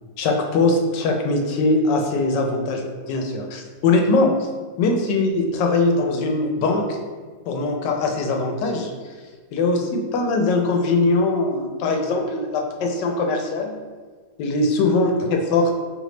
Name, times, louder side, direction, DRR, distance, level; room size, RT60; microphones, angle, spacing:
voice 1, 0.2-4.5 4.8-7.0 7.5-8.9 9.5-13.8 14.4-15.7, left 3 dB, 85° left, 3 dB, 1.2 m, -21 dB
3.7 x 3.1 x 3.1 m, 1.5 s
omnidirectional pair, 1.8 m